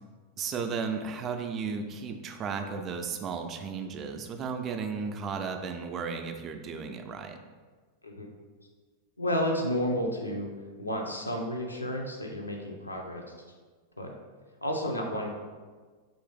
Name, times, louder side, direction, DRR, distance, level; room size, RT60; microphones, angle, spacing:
voice 1, 0.4-7.4, right 5 dB, 30° right, 6 dB, 0.3 m, -34 dB
voice 2, 8.0-8.4 9.2-10.5 10.8-13.2 14.0-14.1 14.6-15.3, equal, 85° left, 1 dB, 0.5 m, -31 dB
3.1 x 2.5 x 3.7 m, 1.4 s
figure-of-eight pair, 90°, 0 cm